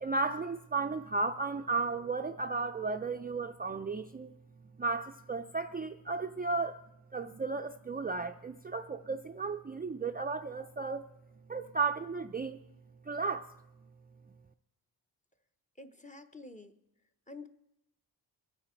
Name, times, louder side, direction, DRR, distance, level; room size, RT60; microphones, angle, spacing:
voice 1, 0.0-4.3 4.8-6.8 7.1-11.0 11.5-12.6 13.1-13.5, right 4 dB, 25° right, 6 dB, 0.4 m, -34 dB
voice 2, 15.8-16.8 17.3-17.5, left 3 dB, 20° left, 8 dB, 0.9 m, -48 dB
23.0 x 8.9 x 4.4 m, 0.86 s
wide cardioid pair, 110°, 41 cm